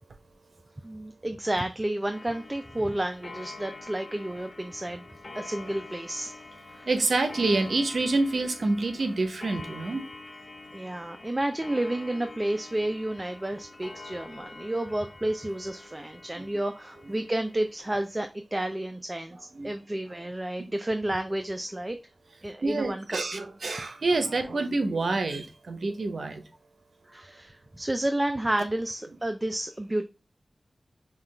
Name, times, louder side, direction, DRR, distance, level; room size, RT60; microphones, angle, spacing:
voice 1, 0.8-5.1 5.3-6.4 6.7-6.9 10.7-22.0 22.4-23.2 27.1-30.0, right 1 dB, 25° right, 0.4 m, -31 dB
Clock, 2.1-18.2, left 3 dB, 55° left, 0.8 m, -46 dB
voice 2, 6.9-10.0 16.3-16.5 19.5-19.8 22.6-26.4, right 3 dB, 80° right, 0.8 m, -27 dB
5.6 x 2.4 x 3.3 m
cardioid pair, 40°, 0 cm